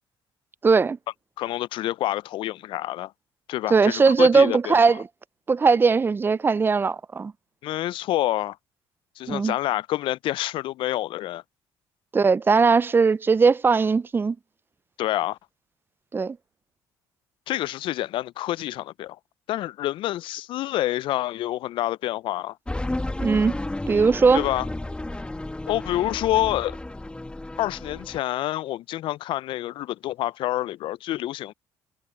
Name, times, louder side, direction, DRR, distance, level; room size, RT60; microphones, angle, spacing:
voice 1, 0.6-1.0 3.7-5.0 5.5-7.3 9.3-9.6 12.1-14.4 16.1-16.4 23.2-23.6 23.9-24.4, right 4 dB, 25° right, 0.4 m, -19 dB
voice 2, 1.4-3.1 3.5-5.0 7.6-8.6 9.2-11.4 15.0-15.4 17.5-19.2 19.5-22.6 24.3-24.7 25.7-26.8 27.6-31.5, left 14 dB, 65° left, 0.4 m, -27 dB
sound 1, 22.7-28.2, left 2 dB, 10° left, 1.7 m, -32 dB
supercardioid pair, 75°, 9 cm